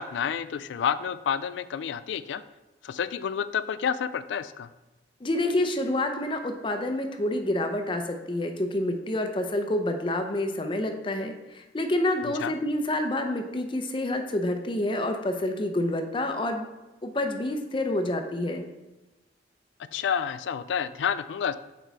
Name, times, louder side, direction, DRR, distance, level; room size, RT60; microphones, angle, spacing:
voice 1, 0.0-2.4 2.8-4.7 12.4-12.5 19.9-21.5, left 7 dB, 80° left, 14 dB, 0.3 m, -29 dB
voice 2, 5.2-16.7 17.0-18.7, left 1 dB, 30° left, 6 dB, 0.6 m, -28 dB
6.1 x 4.7 x 4.0 m, 1.1 s
head